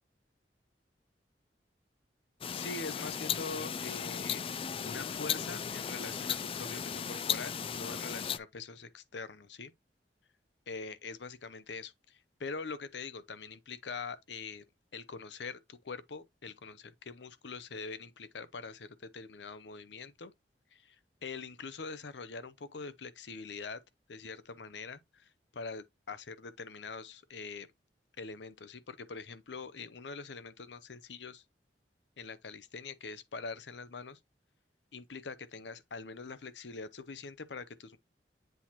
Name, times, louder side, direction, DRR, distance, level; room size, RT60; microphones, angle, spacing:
sound 1, 2.4-8.4, left 7 dB, 30° left, 0.3 m, -36 dB
voice 1, 2.5-4.4 4.8-9.7 10.7-14.6 14.9-20.3 20.7-21.0 21.2-23.8 24.1-27.7 28.2-31.4 32.2-34.2 34.9-38.0, left 4 dB, 80° left, 0.7 m, -44 dB
7.9 x 4.2 x 3.0 m
head